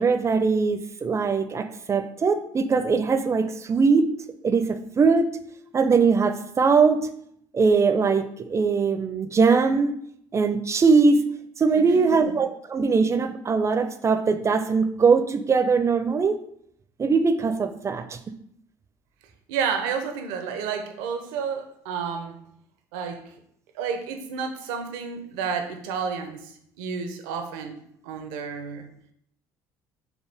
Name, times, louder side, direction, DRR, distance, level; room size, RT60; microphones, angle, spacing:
voice 1, 0.0-4.1 4.4-5.3 5.7-7.0 7.5-9.9 10.3-11.2 11.6-16.4 17.0-18.2, right 4 dB, 30° right, 9 dB, 0.4 m, -21 dB
voice 2, 11.8-12.3 19.5-22.4 22.9-23.2 23.7-28.9, right 6 dB, 80° right, 6 dB, 0.6 m, -31 dB
4.5 x 2.3 x 3.3 m, 0.69 s
hypercardioid pair, 70°, 10 cm